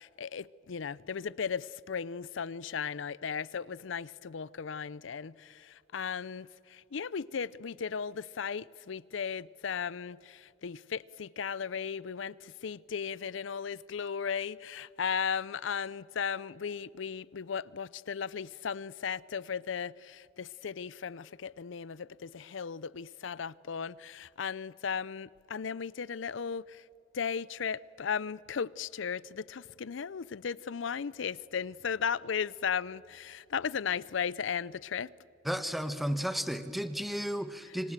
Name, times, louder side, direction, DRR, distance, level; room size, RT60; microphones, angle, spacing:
voice 1, 0.0-26.8 27.1-35.1 37.7-37.8, left 6 dB, 70° left, 0.5 m, -36 dB
voice 2, 35.4-37.9, equal, ahead, 1.2 m, -33 dB
27.0 x 25.0 x 7.4 m
head